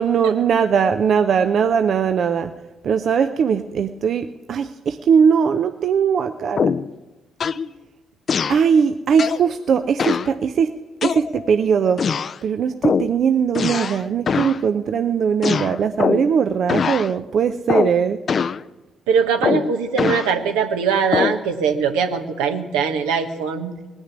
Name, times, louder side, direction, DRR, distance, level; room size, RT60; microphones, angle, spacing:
voice 1, 0.0-2.5 2.8-6.7 8.5-10.7 11.0-12.0 12.4-18.2, right 7 dB, 60° right, 9 dB, 0.6 m, -19 dB
sound 1, 6.6-6.9 7.4-7.7 8.3-8.6 9.2-9.5 10.0-10.3 11.0-11.5 12.0-12.4 12.8-13.1 13.5-14.0 14.3-14.6 15.4-16.3 16.7-17.1 17.7-18.0 18.3-18.6 19.4-20.3 21.1-21.4, left 6 dB, 50° left, 0.4 m, -22 dB
voice 2, 19.1-23.7, right 6 dB, 85° right, 5 dB, 1.2 m, -21 dB
19.0 x 6.3 x 9.7 m, 1.2 s
supercardioid pair, 55°, 0 cm